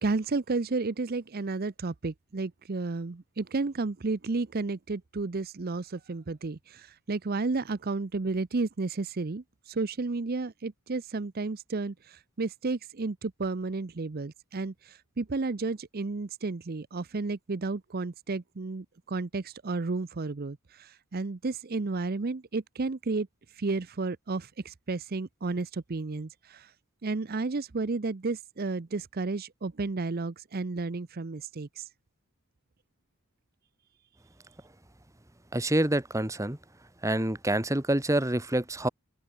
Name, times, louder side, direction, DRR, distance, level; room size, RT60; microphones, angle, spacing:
voice 1, 0.0-26.7 27.0-31.9, right 3 dB, 45° right, 0.6 m, -32 dB
voice 2, 35.5-36.6 37.0-38.9, right 1 dB, 15° right, 1.5 m, -27 dB
open air
head